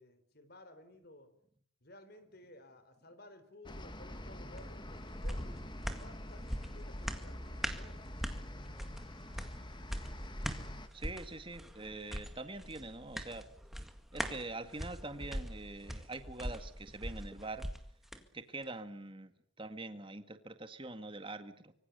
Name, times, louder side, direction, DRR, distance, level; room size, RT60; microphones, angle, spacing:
voice 1, 0.0-1.3 1.8-5.6 5.9-8.1, left 1 dB, 50° left, 10 dB, 3.9 m, -56 dB
sound 1, 3.6-10.9, left 1 dB, 20° left, 1.7 m, -45 dB
sound 2, 4.6-18.2 18.6-18.7, equal, ahead, 1.9 m, -42 dB
voice 2, 10.9-13.5 14.1-17.7 18.3-19.3 19.6-21.7, right 2 dB, 25° right, 9 dB, 1.9 m, -44 dB
25.0 x 24.0 x 6.9 m, 0.62 s
head